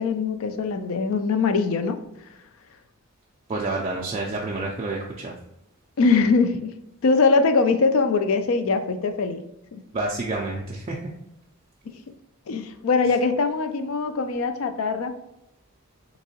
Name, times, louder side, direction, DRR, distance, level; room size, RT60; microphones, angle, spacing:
voice 1, 0.0-2.0 6.0-6.7 7.0-9.4 9.7-9.8 12.5-15.2, left 4 dB, 65° left, 9 dB, 0.3 m, -22 dB
voice 2, 3.5-5.3 9.9-11.0 13.0-13.2, right 2 dB, 30° right, -3 dB, 0.3 m, -29 dB
3.5 x 2.9 x 2.7 m, 0.87 s
head